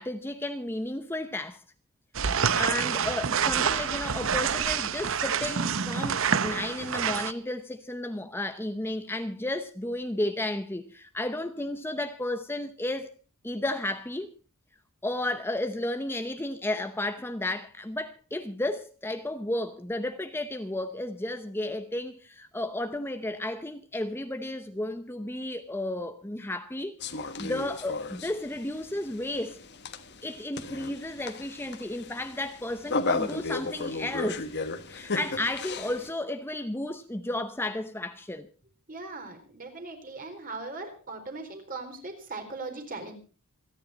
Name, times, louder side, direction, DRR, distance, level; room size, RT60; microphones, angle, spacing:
voice 1, 0.0-1.6 2.5-13.1 13.4-14.3 15.0-27.0 27.4-29.6 30.2-34.5 34.9-38.5, left 1 dB, 10° left, 0.7 m, -33 dB
sound 1, 2.1-7.3, right 7 dB, 60° right, 0.8 m, -27 dB
sound 2, 27.0-36.1, left 3 dB, 50° left, 1.4 m, -35 dB
voice 2, 38.9-43.1, right 3 dB, 40° right, 4.2 m, -39 dB
27.5 x 10.0 x 4.1 m
head